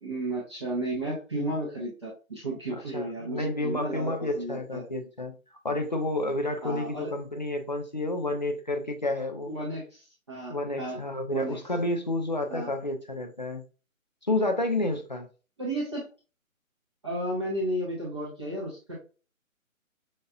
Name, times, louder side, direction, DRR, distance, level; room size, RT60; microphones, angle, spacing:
voice 1, 0.0-4.8 6.6-7.1 9.5-11.0 11.3-11.6 12.5-12.7 15.6-16.1 17.0-19.0, right 1 dB, 20° right, 0.6 m, -33 dB
voice 2, 2.9-5.3 5.6-9.5 10.5-13.6 14.2-15.3, left 2 dB, 35° left, 0.4 m, -30 dB
5.5 x 2.4 x 2.3 m
figure-of-eight pair, 150°, 41 cm